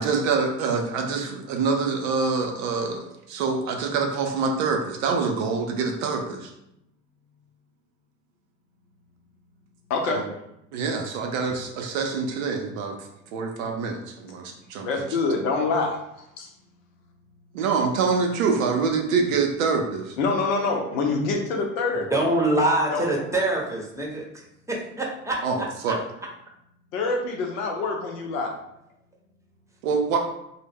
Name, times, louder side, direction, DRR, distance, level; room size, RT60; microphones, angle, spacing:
voice 1, 0.0-6.5 10.1-10.2 10.7-13.0 13.3-14.9 17.5-20.2 25.4-26.0 29.8-30.2, right 4 dB, 80° right, 3 dB, 0.5 m, -25 dB
voice 2, 9.9-10.3 14.8-16.5 20.2-22.2 22.9-23.1 26.9-28.5, left 3 dB, 80° left, 1 dB, 0.6 m, -26 dB
voice 3, 22.1-24.2 24.7-25.4 25.9-26.0, right 1 dB, 10° right, -2 dB, 0.7 m, -24 dB
2.1 x 2.0 x 3.4 m, 0.81 s
hypercardioid pair, 60°, 39 cm